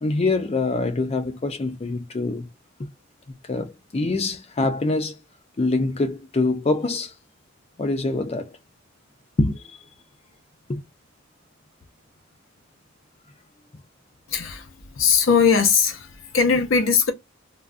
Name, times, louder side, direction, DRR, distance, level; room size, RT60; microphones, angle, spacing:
voice 1, 0.0-2.5 2.8-2.9 3.5-5.2 5.6-7.1 7.8-8.5 9.4-9.6 10.7-10.8, left 2 dB, 30° left, 0.5 m, -24 dB
voice 2, 14.3-17.1, left 6 dB, 80° left, 0.7 m, -20 dB
3.4 x 2.2 x 2.5 m
head